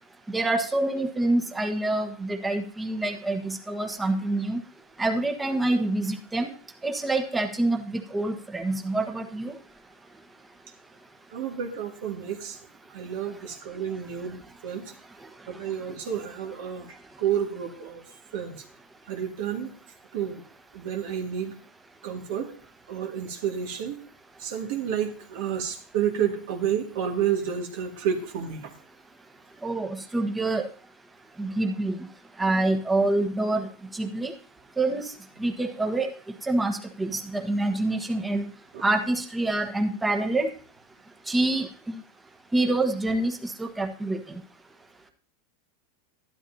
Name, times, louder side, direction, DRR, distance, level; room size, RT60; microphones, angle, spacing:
voice 1, 0.3-4.6 5.0-6.5 6.8-9.5 29.6-30.7 31.4-32.0 32.4-33.7 33.9-34.3 34.8-35.0 35.4-36.1 36.4-38.4 38.8-40.5 41.3-42.0 42.5-44.4, right 2 dB, 10° right, 5 dB, 1.3 m, -26 dB
voice 2, 11.3-12.6 12.9-14.9 15.5-18.6 19.1-19.7 20.1-20.4 20.7-21.6 22.0-22.5 22.9-24.0 24.4-28.7 38.7-38.8, right 8 dB, 65° right, 3 dB, 2.1 m, -30 dB
12.0 x 12.0 x 2.8 m, 0.43 s
hypercardioid pair, 115°, 0 cm